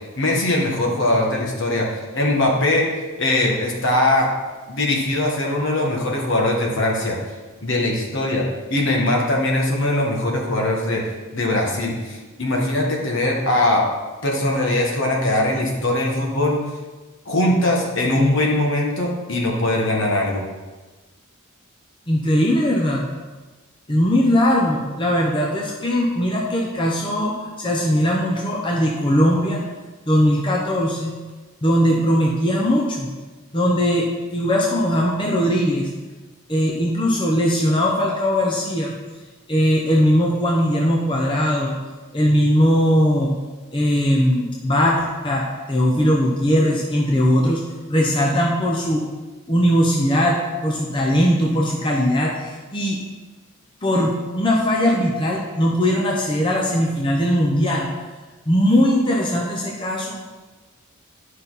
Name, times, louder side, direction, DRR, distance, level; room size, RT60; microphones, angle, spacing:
voice 1, 0.2-1.9 2.1-4.3 4.7-7.2 7.6-11.0 11.3-13.9 14.2-16.6 17.3-20.4, left 1 dB, 60° left, -1 dB, 1.7 m, -21 dB
voice 2, 22.1-23.0 23.9-29.6 30.1-31.1 31.6-33.1 33.5-35.9 36.5-38.9 39.5-41.8 42.1-43.3 43.7-47.6 47.9-49.0 49.5-50.4 50.6-53.0 53.8-57.9 58.5-60.2, equal, 25° left, -2 dB, 0.8 m, -19 dB
10.5 x 5.6 x 4.1 m, 1.3 s
head